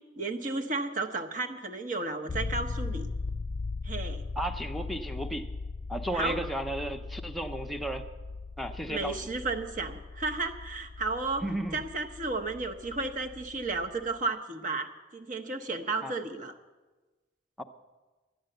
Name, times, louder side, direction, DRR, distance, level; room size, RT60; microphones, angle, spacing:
voice 1, 0.2-3.1 3.8-4.2 6.1-6.4 8.9-11.4 11.7-16.5, right 3 dB, 45° right, 5 dB, 1.0 m, -33 dB
sound 1, 2.3-14.2, left 3 dB, 30° left, 0.3 m, -39 dB
voice 2, 4.4-5.5 5.9-8.0 8.6-9.2 11.4-11.8 16.0-16.2 17.6-17.7, right 1 dB, ahead, 4 dB, 0.7 m, -34 dB
12.5 x 9.6 x 7.9 m, 1.2 s
head